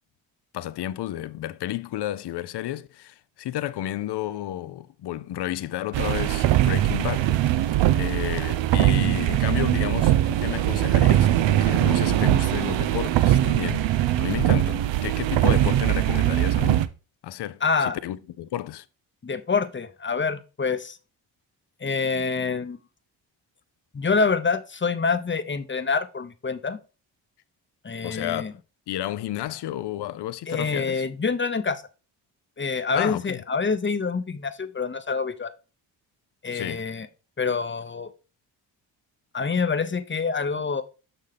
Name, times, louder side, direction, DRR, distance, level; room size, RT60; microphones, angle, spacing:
voice 1, 0.5-13.9 14.2-16.8 17.2-18.9 28.0-31.0 32.9-33.4 36.5-36.9, left 13 dB, 55° left, 0.6 m, -32 dB
sound 1, 5.9-16.9, right 13 dB, 65° right, 0.6 m, -21 dB
voice 2, 17.6-18.0 19.2-21.0 21.8-22.8 23.9-26.8 27.8-28.5 30.5-31.8 32.6-35.5 36.4-37.1 37.4-38.1 39.3-40.8, left 4 dB, 25° left, 0.8 m, -26 dB
6.4 x 5.9 x 3.3 m
supercardioid pair, 50°, 48 cm